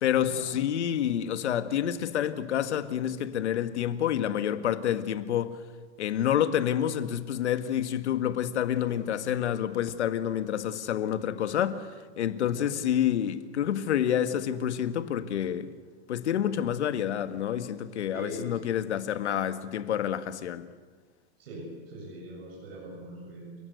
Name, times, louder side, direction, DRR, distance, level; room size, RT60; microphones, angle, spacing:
voice 1, 0.0-5.6 6.0-11.9 12.2-15.7 16.1-20.6, left 10 dB, 90° left, 1.8 m, -28 dB
voice 2, 18.1-18.6 21.4-23.6, right 1 dB, 60° right, 7.8 m, -42 dB
30.0 x 18.0 x 8.1 m
supercardioid pair, 180°, 33 cm